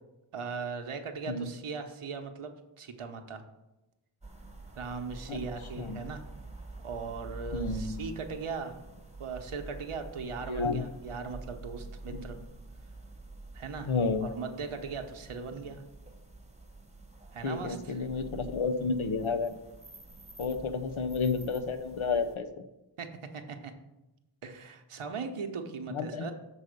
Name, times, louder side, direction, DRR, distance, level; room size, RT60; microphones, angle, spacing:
voice 1, 0.3-3.4 4.8-6.2 6.8-8.8 9.2-12.4 13.5-13.9 14.2-15.8 17.3-18.0 23.0-23.7 24.4-26.3, right 5 dB, 90° right, 5 dB, 0.9 m, -39 dB
sound 1, 4.2-22.4, right 3 dB, 15° right, 1.0 m, -47 dB
voice 2, 7.5-7.9 10.5-10.9 12.2-12.3 13.9-14.3 17.4-19.5 20.4-22.5 25.9-26.3, left 4 dB, 75° left, 9 dB, 0.8 m, -31 dB
7.1 x 4.1 x 6.5 m, 0.96 s
wide cardioid pair, 45°, 49 cm